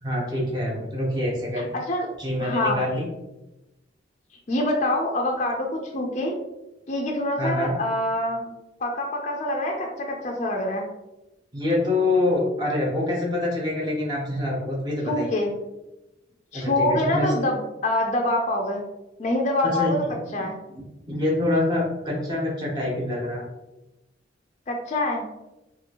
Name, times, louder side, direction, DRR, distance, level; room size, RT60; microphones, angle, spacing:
voice 1, 0.0-1.7 2.2-3.1 7.4-7.8 11.5-15.3 16.5-17.2 19.6-20.1 20.8-23.4, left 2 dB, 20° right, -3 dB, 0.6 m, -25 dB
voice 2, 2.4-2.8 4.5-6.3 6.9-8.5 8.8-10.9 15.1-15.5 16.5-18.8 19.2-20.0 20.3-20.5 24.7-25.2, left 1 dB, 35° left, 1 dB, 0.4 m, -25 dB
3.0 x 2.6 x 2.7 m, 0.95 s
head